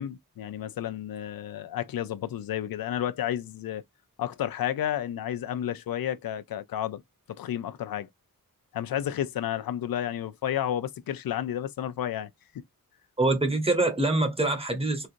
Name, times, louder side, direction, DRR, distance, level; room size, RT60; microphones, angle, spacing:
voice 1, 0.0-3.8 4.2-7.0 7.3-8.1 8.7-12.3, left 11 dB, 75° left, 0.5 m, -31 dB
voice 2, 13.2-15.1, right 2 dB, 15° right, 0.8 m, -25 dB
4.1 x 2.5 x 2.5 m
wide cardioid pair, 170°, 35 cm